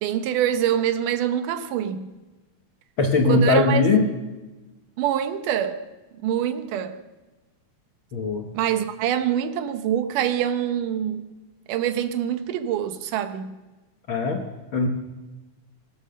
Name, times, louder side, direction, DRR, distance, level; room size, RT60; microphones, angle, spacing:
voice 1, 0.0-2.1 3.3-3.9 5.0-5.8 6.2-7.0 8.5-11.3 11.7-13.5, right 10 dB, 90° right, 9 dB, 2.6 m, -25 dB
voice 2, 3.0-4.1 8.1-8.5 14.1-14.4 14.7-14.9, left 3 dB, 55° left, 3 dB, 1.5 m, -20 dB
20.5 x 11.0 x 6.5 m, 1.2 s
omnidirectional pair, 3.6 m